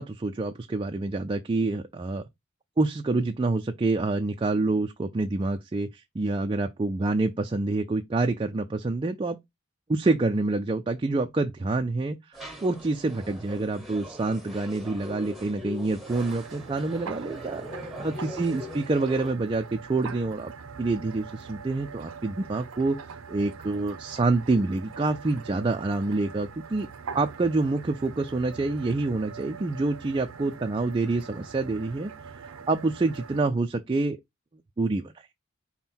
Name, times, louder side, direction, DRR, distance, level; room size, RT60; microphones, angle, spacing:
voice 1, 0.0-2.2 2.8-9.4 9.9-17.6 18.0-20.5 20.8-23.0 23.3-26.9 27.1-32.1 32.4-34.2 34.8-35.3, right 3 dB, 25° right, 0.3 m, -27 dB
sound 1, 12.3-19.3, left 1 dB, ahead, 1.0 m, -42 dB
sound 2, 16.1-33.4, right 5 dB, 85° right, 0.6 m, -43 dB
5.4 x 2.2 x 4.3 m
head